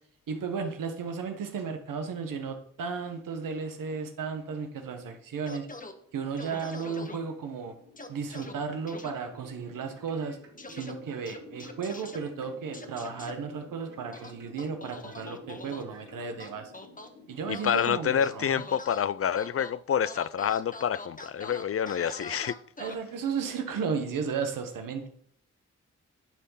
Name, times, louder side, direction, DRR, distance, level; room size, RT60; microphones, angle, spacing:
voice 1, 0.3-5.7 6.1-7.7 8.1-10.4 10.7-16.7 17.3-18.6 22.8-25.1, right 5 dB, 85° right, 1.2 m, -34 dB
sound 1, 2.7-19.0, left 3 dB, 80° left, 3.7 m, -54 dB
sound 2, 5.5-5.9 6.4-7.2 8.0-8.5 8.9-9.1 10.6-10.9 11.3-12.2 12.7-13.3 14.1-15.8 16.4-17.1 17.5-17.9 18.2-19.0 19.3-19.7 20.0-22.9, left 2 dB, 25° left, 1.2 m, -43 dB
sound 3, 8.7-16.6, right 4 dB, 65° right, 3.4 m, -54 dB
voice 2, 17.5-22.6, left 8 dB, 45° left, 0.4 m, -28 dB
10.5 x 3.6 x 5.6 m
supercardioid pair, 45°, 32 cm